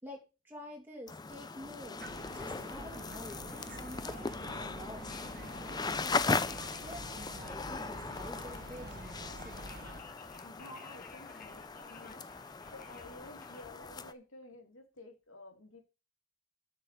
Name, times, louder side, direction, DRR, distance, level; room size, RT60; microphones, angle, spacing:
voice 1, 0.0-2.0 2.3-5.1 5.6-9.8, equal, 10° right, 0 dB, 2.5 m, -49 dB
sound 1, 1.1-14.1, left 4 dB, 20° left, 0.4 m, -39 dB
sound 2, 2.0-10.0, right 1 dB, 45° right, 1.4 m, -47 dB
Conversation, 5.1-13.7, left 5 dB, 45° left, 1.5 m, -57 dB
voice 2, 10.4-15.8, left 2 dB, 75° left, 5 dB, 2.5 m, -52 dB
8.2 x 6.3 x 6.7 m, 0.30 s
head